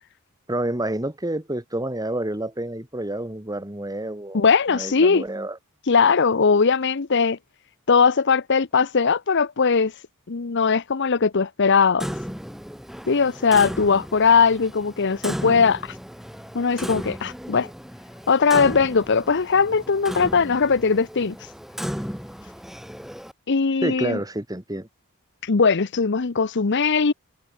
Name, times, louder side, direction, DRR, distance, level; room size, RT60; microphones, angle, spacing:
voice 1, 0.5-4.4 4.7-5.6 23.8-24.9, right 1 dB, 15° right, 2.3 m, -28 dB
voice 2, 4.3-5.2 5.9-7.4 7.9-9.9 10.3-12.1 13.1-15.9 16.5-17.7 18.3-21.3 23.5-24.2 25.4-27.1, left 5 dB, 55° left, 0.7 m, -20 dB
Clock, 12.0-23.3, equal, ahead, 5.9 m, -35 dB
head